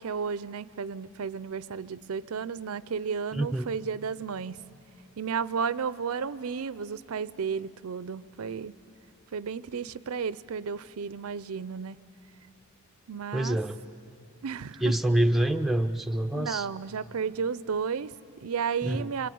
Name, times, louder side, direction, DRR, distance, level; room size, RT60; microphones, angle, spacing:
voice 1, 0.0-4.6 5.2-8.8 9.3-12.0 13.1-13.6 14.4-14.9 16.3-19.3, right 6 dB, 80° right, 18 dB, 0.5 m, -33 dB
voice 2, 3.3-3.7 13.3-13.8 14.8-16.7 18.8-19.1, right 1 dB, ahead, 5 dB, 0.5 m, -26 dB
27.0 x 23.0 x 9.3 m, 2.9 s
head